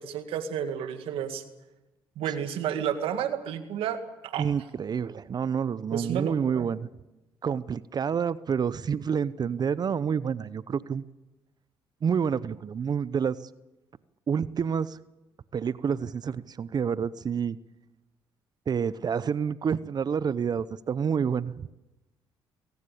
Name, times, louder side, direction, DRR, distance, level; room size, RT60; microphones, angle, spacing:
voice 1, 0.0-1.4 2.2-4.4 5.9-6.7, right 9 dB, 75° right, 9 dB, 2.1 m, -31 dB
voice 2, 4.4-6.9 7.4-11.0 12.0-13.4 14.3-15.0 15.5-17.6 18.7-21.7, right 7 dB, 45° right, 18 dB, 0.7 m, -28 dB
22.5 x 18.0 x 8.5 m, 1.0 s
supercardioid pair, 60°, 9 cm